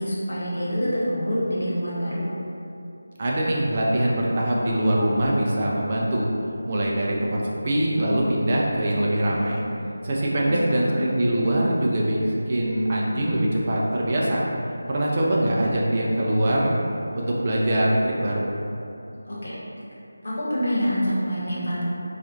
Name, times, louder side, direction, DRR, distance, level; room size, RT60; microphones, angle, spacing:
voice 1, 0.0-2.2 10.4-11.0 19.3-19.6 20.2-21.8, equal, 50° left, -8 dB, 1.1 m, -26 dB
voice 2, 3.2-6.3 6.7-9.6 10.0-14.4 14.9-16.8 17.1-18.4, right 1 dB, 30° right, -4 dB, 0.3 m, -23 dB
4.1 x 2.4 x 2.7 m, 2.7 s
figure-of-eight pair, 160°, 0 cm